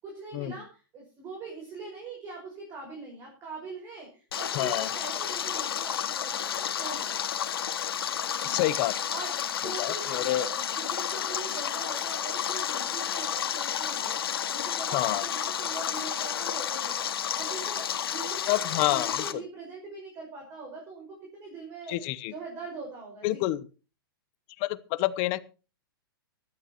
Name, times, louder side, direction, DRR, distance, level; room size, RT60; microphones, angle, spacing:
voice 1, 0.0-7.3 8.3-8.6 9.1-22.0 22.3-23.4, right 4 dB, 25° right, 0 dB, 5.3 m, -42 dB
Stream, 4.3-19.3, left 9 dB, 85° left, 2.0 m, -31 dB
voice 2, 4.5-4.9 8.4-8.9 9.8-10.5 14.9-15.2 18.5-19.4 21.9-22.3 23.2-23.7 24.6-25.4, left 16 dB, 30° left, 16 dB, 0.7 m, -28 dB
18.5 x 12.5 x 3.0 m, 0.34 s
hypercardioid pair, 160°, 12 cm